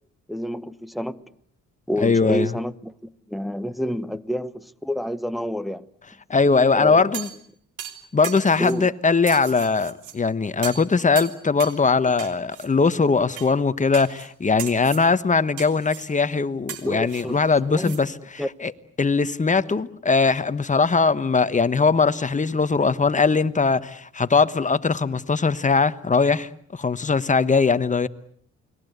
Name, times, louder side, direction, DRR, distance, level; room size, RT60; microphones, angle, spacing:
voice 1, 0.3-1.3 1.9-5.9 6.7-7.1 8.6-8.9 16.8-17.4 17.7-18.0 18.4-18.5, equal, ahead, 1.1 m, -29 dB
voice 2, 2.0-2.5 6.3-7.3 8.1-18.7 19.0-28.1, left 4 dB, 25° left, 1.2 m, -20 dB
sound 1, 7.1-7.4 7.8-8.8 9.3-10.2 10.6-10.9 11.2-11.8 12.2-12.7 13.4-13.5 13.9-14.3 14.6-15.1 15.6-16.1 16.7-18.0 18.4-18.5, right 10 dB, 85° right, 3.2 m, -37 dB
29.0 x 21.0 x 8.1 m
cardioid pair, 90°, 30 cm